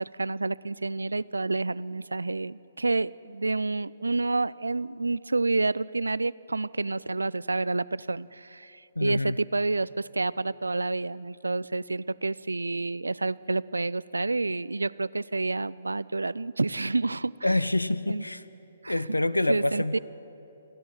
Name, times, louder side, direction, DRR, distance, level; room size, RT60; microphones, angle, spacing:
voice 1, 0.0-17.6 18.1-18.2 18.8-19.0 19.5-20.0, right 3 dB, 80° right, 19 dB, 0.4 m, -29 dB
voice 2, 9.0-9.4 17.4-18.4 18.9-20.0, left 1 dB, 90° left, 15 dB, 0.5 m, -26 dB
29.5 x 11.0 x 9.4 m, 3.0 s
figure-of-eight pair, 130°, 0 cm